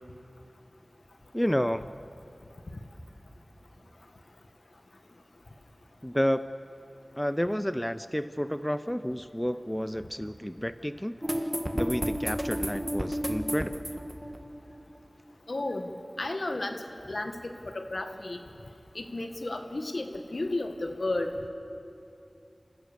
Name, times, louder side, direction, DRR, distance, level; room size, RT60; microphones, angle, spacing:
voice 1, 1.3-1.8 6.0-6.5 7.2-13.8, equal, 10° left, 13 dB, 0.5 m, -30 dB
sound 1, 11.2-15.0, equal, 10° right, 1.6 m, -32 dB
voice 2, 15.5-16.8 17.1-18.4 18.9-21.5, left 2 dB, 70° left, 6 dB, 1.6 m, -33 dB
27.0 x 15.5 x 6.8 m, 2.7 s
wide cardioid pair, 45°, 0 cm